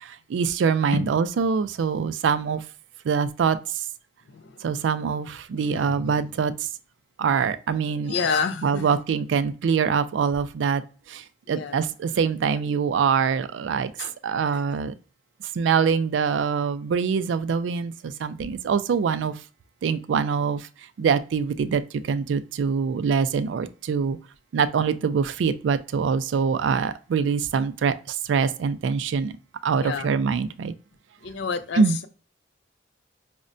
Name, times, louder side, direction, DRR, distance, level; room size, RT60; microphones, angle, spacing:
voice 1, 0.0-2.6 3.0-3.6 4.6-6.5 7.2-8.1 8.6-10.8 11.1-13.9 14.2-14.9 15.5-19.3 19.8-20.7 21.0-24.2 24.5-29.4 29.6-30.7 31.8-32.0, right 6 dB, 85° right, 0.3 m, -24 dB
voice 2, 4.3-4.8 5.5-6.2 8.0-9.0 11.5-11.8 14.0-14.1 29.8-30.1 31.2-32.1, left 5 dB, 80° left, 0.4 m, -30 dB
5.2 x 2.1 x 2.5 m
head